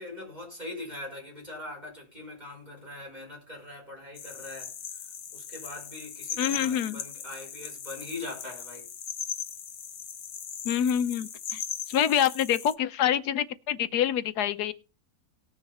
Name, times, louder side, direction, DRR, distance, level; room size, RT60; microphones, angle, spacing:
voice 1, 0.0-5.0 5.3-8.9, left 2 dB, 25° right, 5.9 m, -42 dB
sound 1, 4.1-12.7, left 8 dB, 65° left, 1.3 m, -39 dB
voice 2, 6.4-7.0 10.6-11.6 11.9-14.7, left 9 dB, 85° left, 1.4 m, -26 dB
18.5 x 6.4 x 4.2 m
omnidirectional pair, 1.7 m